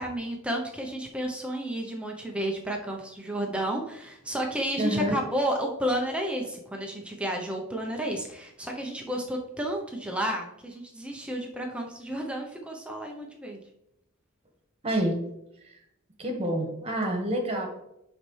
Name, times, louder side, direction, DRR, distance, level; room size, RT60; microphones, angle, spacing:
voice 1, 0.0-13.6, right 1 dB, 5° right, 1 dB, 0.7 m, -31 dB
voice 2, 4.8-5.2 14.8-15.2 15.6-15.8 16.2-17.7, right 1 dB, 30° right, 3 dB, 1.4 m, -27 dB
10.5 x 4.2 x 3.2 m, 0.81 s
head